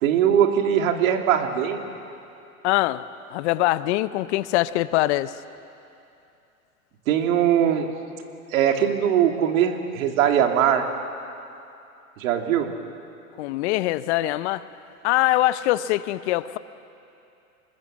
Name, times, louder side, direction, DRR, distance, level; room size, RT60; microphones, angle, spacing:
voice 1, 0.0-1.8 7.1-7.9 8.5-10.8 12.2-12.8, right 9 dB, 65° right, 4 dB, 2.6 m, -21 dB
voice 2, 2.6-5.3 13.4-14.6 15.0-16.6, left 16 dB, 50° left, 15 dB, 0.8 m, -23 dB
26.0 x 20.0 x 7.5 m, 2.7 s
hypercardioid pair, 115°, 44 cm